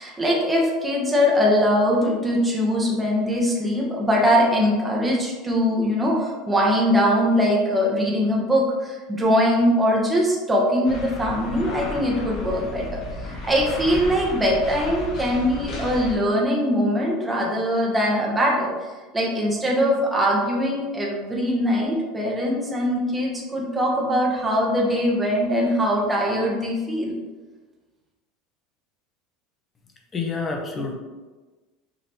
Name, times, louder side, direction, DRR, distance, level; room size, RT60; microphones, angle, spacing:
voice 1, 0.0-27.2, equal, 10° right, -3 dB, 1.0 m, -22 dB
sound 1, 10.9-16.2, left 1 dB, 45° left, 1.1 m, -33 dB
voice 2, 30.1-30.9, left 4 dB, 25° left, 2 dB, 0.8 m, -28 dB
5.2 x 2.9 x 3.0 m, 1.3 s
supercardioid pair, 125°, 0 cm